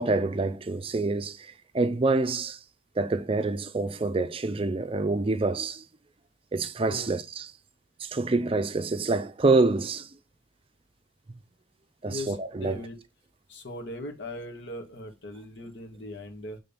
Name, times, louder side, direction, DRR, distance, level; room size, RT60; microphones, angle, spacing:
voice 1, 0.0-2.6 3.0-5.8 6.5-7.5 8.0-10.1 12.0-12.8, right 3 dB, 30° right, 0.5 m, -26 dB
voice 2, 12.0-13.0 13.5-16.6, left 1 dB, 80° left, 1.8 m, -39 dB
7.0 x 3.8 x 5.6 m
head